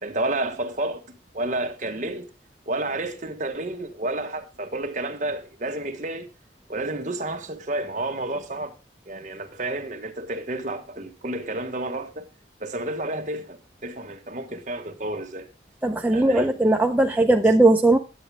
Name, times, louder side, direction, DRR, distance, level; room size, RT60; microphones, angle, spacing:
voice 1, 0.0-2.3 2.7-6.3 6.7-8.7 9.1-12.3 12.6-15.5 16.1-16.6, right 2 dB, 45° right, 1.3 m, -30 dB
voice 2, 15.8-18.0, right 2 dB, 10° right, 0.5 m, -18 dB
9.8 x 8.6 x 3.4 m
head